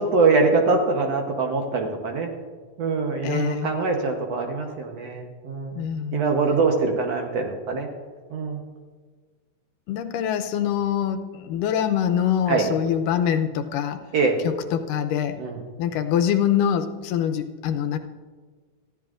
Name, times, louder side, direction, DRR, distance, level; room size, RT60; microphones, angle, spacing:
voice 1, 0.0-2.3 2.8-5.9 6.1-7.9 8.3-8.6 12.5-12.7 14.1-14.4 15.4-15.6, right 4 dB, 65° right, 2 dB, 1.8 m, -23 dB
voice 2, 3.2-3.7 5.8-6.2 9.9-14.0 14.4-15.4 15.8-18.0, left 9 dB, 85° left, 7 dB, 2.3 m, -24 dB
20.0 x 14.5 x 2.5 m, 1.5 s
omnidirectional pair, 3.8 m